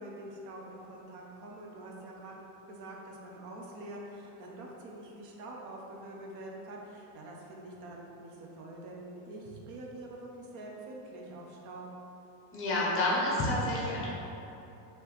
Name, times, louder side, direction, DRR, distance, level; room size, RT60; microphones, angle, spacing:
voice 1, 0.0-2.4 2.7-11.9, right 1 dB, 40° right, -2 dB, 0.7 m, -45 dB
voice 2, 12.5-14.0, left 1 dB, 25° left, -5 dB, 1.0 m, -29 dB
4.7 x 2.9 x 3.2 m, 2.9 s
supercardioid pair, 155°, 46 cm